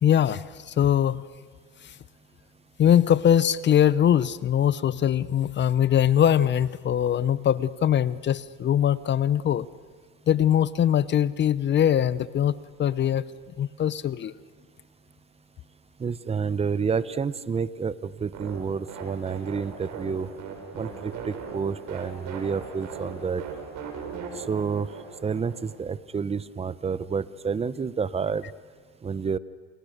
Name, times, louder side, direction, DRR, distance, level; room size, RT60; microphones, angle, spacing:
voice 1, 0.0-1.2 1.8-1.9 2.8-9.7 10.3-13.3 13.6-14.3, left 10 dB, 30° left, 18 dB, 0.8 m, -22 dB
voice 2, 16.0-20.3 20.7-23.4 24.3-24.9 25.2-28.5 29.0-29.4, right 6 dB, 15° right, 17 dB, 0.9 m, -29 dB
sound 1, 18.3-25.8, right 5 dB, 50° right, 6.4 m, -39 dB
29.5 x 28.5 x 6.7 m, 1.5 s
supercardioid pair, 110°, 36 cm